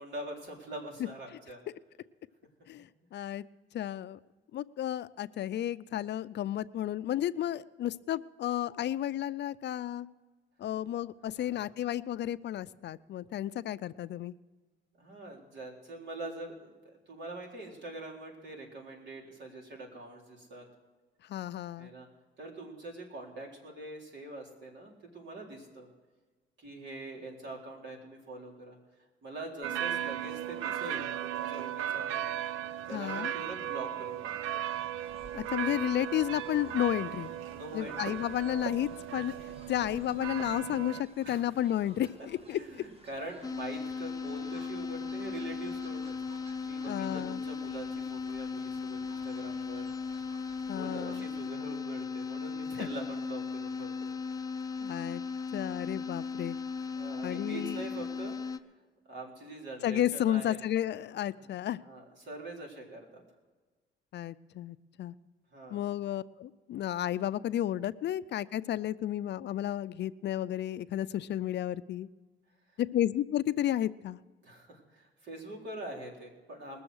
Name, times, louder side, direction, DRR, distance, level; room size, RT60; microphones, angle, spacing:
voice 1, 0.0-1.6 11.4-11.7 15.0-20.7 21.8-22.1 22.4-25.9 26.6-28.8 29.2-32.3 32.9-34.3 37.5-38.3 41.2-41.4 42.0-42.1 42.5-49.9 50.7-54.1 56.9-58.6 59.1-60.6 61.4-61.5 61.8-63.2 65.5-65.9 72.7-72.8 74.4-76.8, right 2 dB, 65° right, -1 dB, 3.9 m, -44 dB
voice 2, 2.7-3.4 3.7-4.2 4.5-10.1 10.6-14.4 21.3-21.9 32.9-33.3 35.3-37.3 37.7-39.3 39.7-42.6 46.9-47.4 50.7-51.3 52.8-52.9 54.8-55.2 55.5-56.6 57.2-57.8 59.8-61.8 64.1-65.1 65.7-72.1 72.8-74.2, left 12 dB, 60° left, 16 dB, 0.5 m, -32 dB
sound 1, 29.6-41.0, right 10 dB, 85° right, 0.5 m, -36 dB
Fowl, 35.0-51.5, right 1 dB, 30° right, 1.7 m, -57 dB
sound 2, 43.4-58.6, left 5 dB, 20° left, 0.7 m, -37 dB
21.0 x 7.0 x 6.3 m, 1.3 s
cardioid pair, 90°, 20 cm